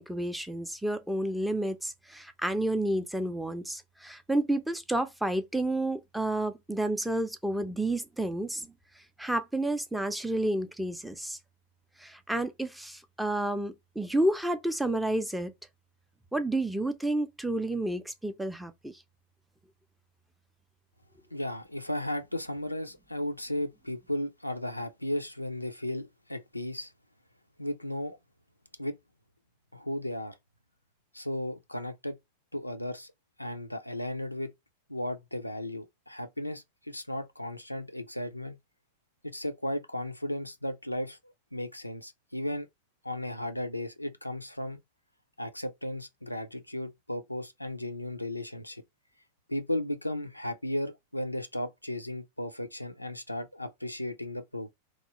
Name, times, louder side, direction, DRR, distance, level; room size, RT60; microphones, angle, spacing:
voice 1, 0.0-8.7 9.2-11.4 12.0-15.5 16.3-18.9, right 1 dB, 5° right, 0.4 m, -30 dB
voice 2, 21.3-26.9 27.6-28.2 28.8-29.0 29.7-30.4 31.1-32.2 32.5-33.1 33.4-34.5 34.9-38.6 39.2-42.7 43.0-44.8 45.4-48.8 49.5-54.7, left 1 dB, 85° left, 0.4 m, -35 dB
2.9 x 2.3 x 2.8 m
figure-of-eight pair, 90°, 0 cm